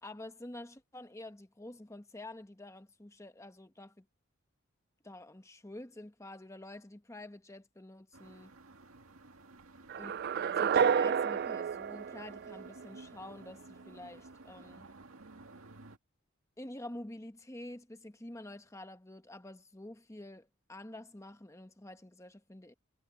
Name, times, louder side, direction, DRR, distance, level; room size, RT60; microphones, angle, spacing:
voice 1, 0.0-4.1 5.0-8.5 10.0-10.1 10.5-14.8 16.6-22.7, left 1 dB, 15° left, 1.1 m, -48 dB
sound 1, 8.1-16.0, right 2 dB, 85° right, 2.2 m, -55 dB
sound 2, 9.9-13.0, right 7 dB, 50° right, 0.3 m, -30 dB
head